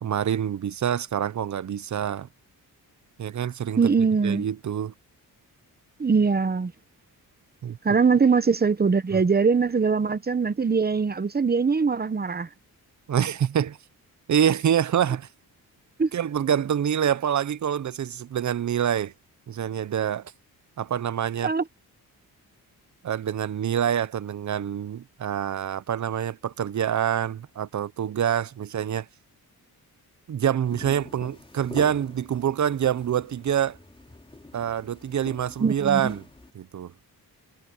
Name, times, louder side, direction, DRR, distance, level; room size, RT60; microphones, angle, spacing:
voice 1, 0.0-2.3 3.2-3.9 4.2-4.9 7.6-8.0 9.1-9.2 13.1-13.8 14.3-15.3 16.1-19.1 19.5-20.3 20.8-21.5 23.0-29.1 30.3-33.8 34.5-36.2 36.5-36.9, right 9 dB, 50° right, 0.8 m, -26 dB
voice 2, 3.8-4.5 6.0-6.7 7.8-12.5 16.0-16.1 21.4-21.6 35.6-36.1, right 5 dB, 25° right, 1.0 m, -22 dB
sound 1, 30.6-36.5, left 2 dB, 15° left, 3.0 m, -44 dB
cardioid pair, 110°, 37 cm